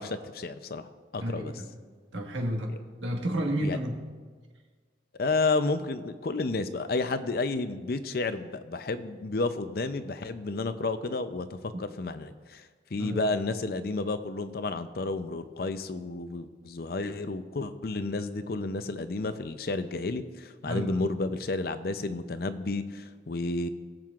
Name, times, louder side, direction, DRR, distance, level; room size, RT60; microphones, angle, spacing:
voice 1, 0.0-1.5 2.7-2.8 3.6-3.8 5.1-12.7 12.9-23.7, left 3 dB, 55° left, 11 dB, 0.5 m, -31 dB
voice 2, 1.2-1.7 2.1-2.7 3.0-4.0 13.0-13.2 20.6-21.0, equal, 90° right, 1 dB, 1.6 m, -31 dB
21.0 x 7.5 x 2.4 m, 1.5 s
head